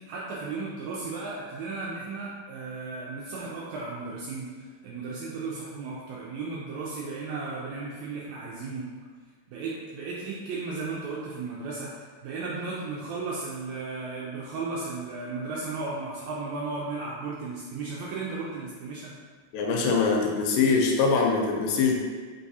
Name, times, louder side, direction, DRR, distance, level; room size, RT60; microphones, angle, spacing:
voice 1, 0.1-8.8 9.5-19.1, right 3 dB, 80° right, -5 dB, 1.6 m, -35 dB
voice 2, 19.5-22.0, left 4 dB, 90° left, 0 dB, 2.3 m, -23 dB
4.7 x 3.4 x 2.7 m, 1.5 s
omnidirectional pair, 3.7 m